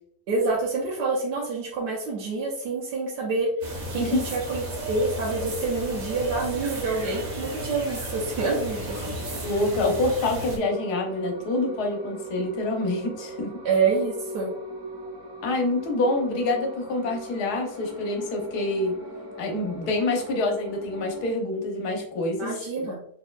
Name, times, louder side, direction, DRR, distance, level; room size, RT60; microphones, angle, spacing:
voice 1, 0.3-3.5 3.9-9.0 13.6-14.5 22.4-23.0, right 4 dB, 80° right, -4 dB, 1.3 m, -27 dB
sound 1, 3.6-10.6, right 1 dB, 60° right, 1.4 m, -34 dB
voice 2, 9.4-13.6 15.4-18.9 19.4-22.9, left 2 dB, 70° left, 2 dB, 1.3 m, -26 dB
sound 2, 10.6-21.3, right 1 dB, 20° right, 0.6 m, -40 dB
4.2 x 3.5 x 2.3 m, 0.68 s
omnidirectional pair, 1.8 m